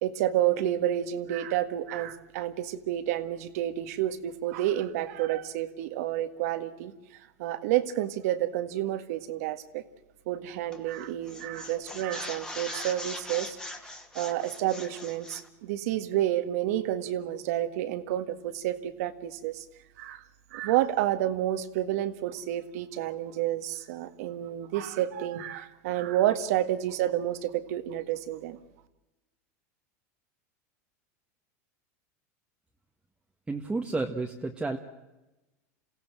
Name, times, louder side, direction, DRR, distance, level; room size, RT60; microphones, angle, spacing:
voice 1, 0.0-6.9 7.4-9.8 10.3-13.6 14.2-19.6 20.0-20.2 20.5-28.6, right 12 dB, 70° right, 10 dB, 1.9 m, -30 dB
sound 1, 10.7-11.0 11.3-15.5, left 2 dB, 10° left, 2.4 m, -41 dB
voice 2, 33.5-34.8, right 3 dB, 10° right, 2 dB, 1.6 m, -31 dB
28.5 x 16.5 x 7.6 m, 1.0 s
hypercardioid pair, 110°, 8 cm